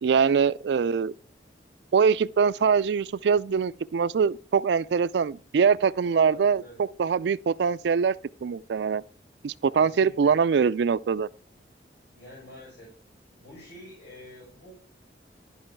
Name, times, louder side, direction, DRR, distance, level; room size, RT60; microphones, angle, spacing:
voice 1, 0.0-1.1 1.9-8.1 8.4-9.0 9.4-11.3, right 6 dB, 75° right, 0.4 m, -23 dB
voice 2, 6.2-6.8 9.7-10.3 12.1-12.9 13.4-14.8, equal, 90° left, 5.7 m, -47 dB
12.0 x 5.5 x 4.5 m
head